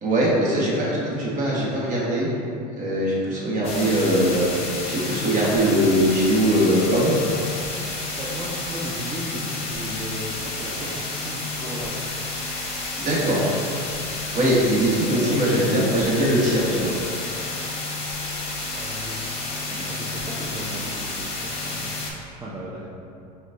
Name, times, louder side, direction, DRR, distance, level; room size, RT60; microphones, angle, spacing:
voice 1, 0.0-2.3 2.7-7.1 13.0-13.4 14.3-16.9, right 1 dB, 40° right, -6 dB, 1.3 m, -21 dB
sound 1, 3.6-22.1, left 2 dB, 30° left, 0.8 m, -31 dB
voice 2, 8.2-12.0 14.9-15.5 18.7-19.2 19.7-21.9 22.4-22.9, equal, 15° right, -6 dB, 0.5 m, -35 dB
6.1 x 2.3 x 2.5 m, 2.6 s
supercardioid pair, 100°, 20 cm